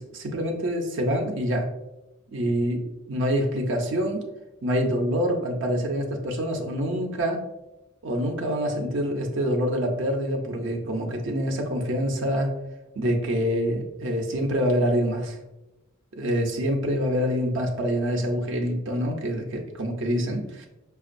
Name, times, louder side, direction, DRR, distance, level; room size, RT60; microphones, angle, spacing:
voice 1, 0.0-1.7 2.3-2.8 3.1-4.2 4.6-7.4 8.0-12.5 13.0-15.4 16.2-20.7, equal, 65° right, 2 dB, 0.5 m, -26 dB
5.1 x 2.3 x 2.5 m, 0.96 s
head